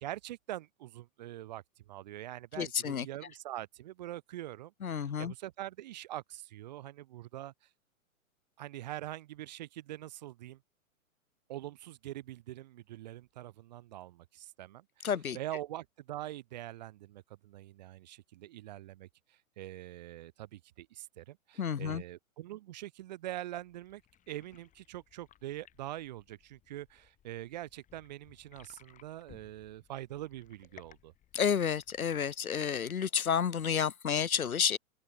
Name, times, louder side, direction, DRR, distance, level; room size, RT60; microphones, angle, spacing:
voice 1, 0.0-1.6 1.9-7.5 8.6-10.6 11.5-15.1 15.3-24.0 24.3-31.1, right 14 dB, 35° right, 0.5 m, -44 dB
voice 2, 2.6-3.1 4.8-5.3 15.0-15.4 21.6-22.0 31.3-34.8, left 7 dB, 85° left, 0.8 m, -30 dB
sound 1, 23.5-32.4, left 11 dB, 20° left, 2.1 m, -61 dB
open air
figure-of-eight pair, 115°, 41 cm